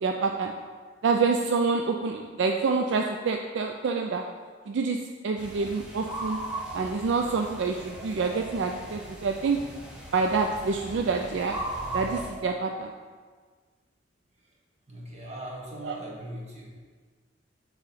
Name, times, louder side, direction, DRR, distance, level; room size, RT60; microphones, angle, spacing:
voice 1, 0.0-0.5 1.0-4.2 4.7-5.0 5.2-6.4 6.7-9.6 10.1-11.6 11.9-12.9 15.8-16.0, right 4 dB, 65° right, 3 dB, 0.4 m, -27 dB
sound 1, 5.4-12.3, right 1 dB, 5° right, 0.9 m, -38 dB
voice 2, 14.9-16.7, right 1 dB, 35° right, -3 dB, 1.2 m, -40 dB
6.5 x 3.1 x 5.5 m, 1.5 s
head